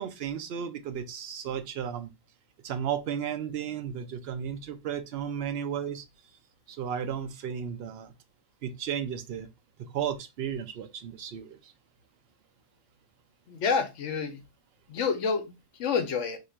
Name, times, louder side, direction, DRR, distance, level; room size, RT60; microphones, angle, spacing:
voice 1, 0.0-2.1 2.6-6.0 6.7-8.1 8.6-9.5 9.8-11.7, right 8 dB, 60° right, 0.7 m, -34 dB
voice 2, 13.5-14.4 14.9-15.4 15.8-16.4, left 5 dB, 70° left, 1.0 m, -28 dB
2.9 x 2.4 x 4.3 m
omnidirectional pair, 1.3 m